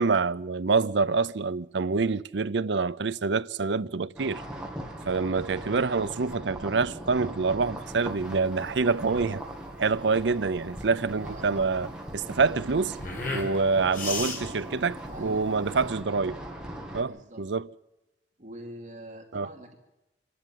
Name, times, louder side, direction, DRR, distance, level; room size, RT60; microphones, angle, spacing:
voice 1, 0.0-4.4 5.1-9.4 9.8-11.9 12.1-13.0 13.3-16.4 16.9-17.7 19.3-19.5, right 4 dB, 80° right, 0.6 m, -26 dB
sound 1, 4.2-17.0, right 1 dB, 5° right, 2.3 m, -40 dB
voice 2, 5.1-5.9 11.2-11.5 14.0-14.7 15.0-16.0 17.0-17.5 18.4-19.8, right 1 dB, 45° right, 2.6 m, -45 dB
sound 2, 7.9-16.0, left 3 dB, 50° left, 5.0 m, -38 dB
26.5 x 11.5 x 9.2 m
head